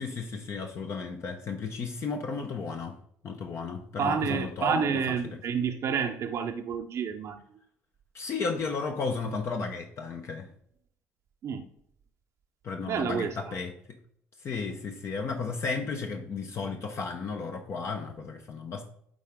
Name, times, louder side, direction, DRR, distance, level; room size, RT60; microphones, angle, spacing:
voice 1, 0.0-3.0 3.2-4.9 5.3-5.4 8.1-10.5 12.6-13.7 14.4-18.8, left 4 dB, 50° left, 4 dB, 0.8 m, -34 dB
voice 2, 4.0-7.4 11.4-11.7 12.9-13.5, right 6 dB, 55° right, 5 dB, 0.7 m, -29 dB
8.9 x 3.8 x 3.6 m, 0.67 s
supercardioid pair, 70°, 6 cm